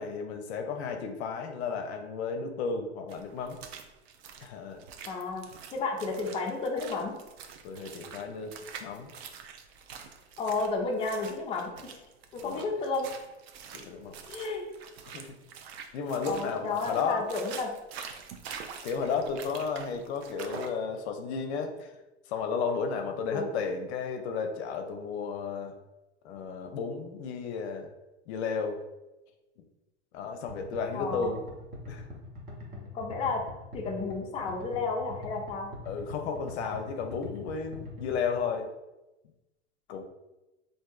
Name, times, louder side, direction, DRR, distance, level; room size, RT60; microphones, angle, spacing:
voice 1, 0.0-3.6 4.4-4.8 7.6-9.1 12.4-12.7 13.7-14.3 15.1-15.4 15.9-17.3 18.8-21.9 22.3-25.8 26.2-27.9 28.3-28.8 29.6-29.7 30.1-31.4 31.9-32.1 35.8-38.7 39.9-40.0, left 5 dB, 70° left, 5 dB, 0.6 m, -33 dB
sound 1, 3.1-20.7, right 7 dB, 65° right, 0.5 m, -46 dB
voice 2, 5.1-7.2 10.4-12.0 12.3-13.1 14.3-14.7 16.3-17.7 23.3-23.5 30.9-31.3 32.9-33.5 33.7-35.7, left 3 dB, 15° left, 0 dB, 0.4 m, -32 dB
sound 2, 30.5-38.4, left 2 dB, 25° right, 0.8 m, -43 dB
3.4 x 2.6 x 2.3 m, 1.0 s
hypercardioid pair, 105°, 35 cm